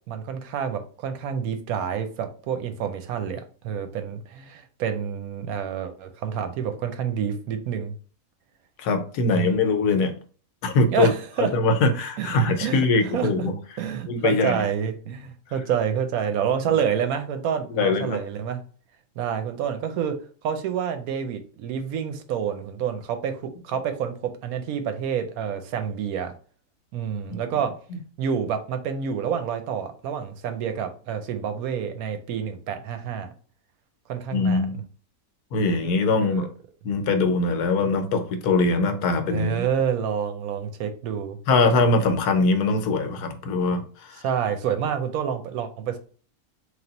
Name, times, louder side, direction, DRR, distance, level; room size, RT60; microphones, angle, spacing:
voice 1, 0.1-7.9 9.3-9.5 10.9-11.5 12.2-13.5 13.8-18.6 19.2-20.2 20.4-26.3 26.9-27.7 28.2-33.3 34.1-34.7 36.2-36.5 39.3-41.4 44.2-46.0, right 8 dB, 75° right, 1.0 m, -28 dB
voice 2, 8.8-10.1 10.6-11.1 11.4-13.5 14.1-14.6 17.7-18.2 27.3-27.4 34.3-34.8 35.5-36.5 36.8-39.6 41.5-43.8 44.1-44.2, left 3 dB, 90° left, 1.2 m, -22 dB
3.4 x 2.7 x 3.8 m
omnidirectional pair, 1.6 m